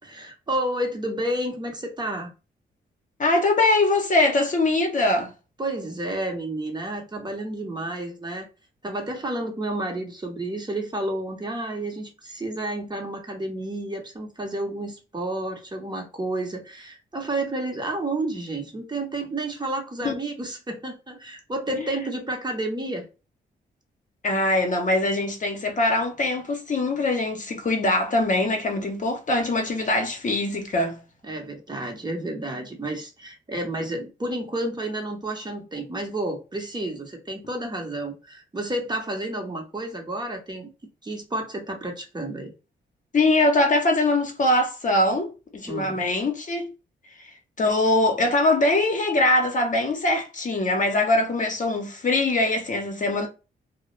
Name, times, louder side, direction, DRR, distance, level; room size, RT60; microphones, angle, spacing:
voice 1, 0.0-2.3 5.6-8.5 8.8-23.1 31.2-40.7 41.0-42.5 45.7-46.0, right 1 dB, 20° right, 0.8 m, -30 dB
voice 2, 3.2-5.3 20.0-20.1 21.7-21.9 24.2-31.0 43.1-46.7 47.6-53.3, left 2 dB, 40° left, 0.7 m, -22 dB
2.2 x 2.0 x 3.1 m
supercardioid pair, 60°, 19 cm